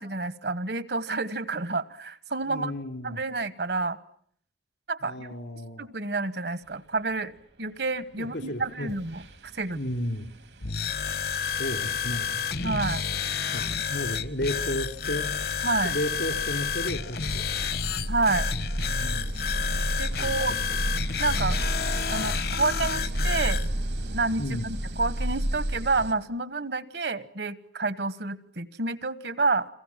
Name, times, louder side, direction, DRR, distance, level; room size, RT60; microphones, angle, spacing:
voice 1, 0.0-2.7 3.0-4.0 4.9-5.3 5.8-7.3 7.6-9.2 9.5-9.8 12.6-13.0 15.6-15.9 18.1-18.5 20.0-20.6 21.2-21.6 22.1-23.6 24.1-29.7, right 3 dB, 70° right, 15 dB, 1.3 m, -29 dB
voice 2, 2.5-3.2 5.0-5.9 8.2-8.9 9.7-10.3 11.6-12.4 13.5-15.3 15.8-17.4 18.9-19.4 20.2-20.8 24.4-24.7, left 1 dB, 80° left, 7 dB, 3.3 m, -33 dB
sound 1, 8.3-8.5 8.9-26.1, right 1 dB, 90° right, 3.1 m, -33 dB
sound 2, 10.6-23.7, left 7 dB, 60° left, 1.0 m, -30 dB
29.5 x 22.5 x 7.4 m, 0.64 s
head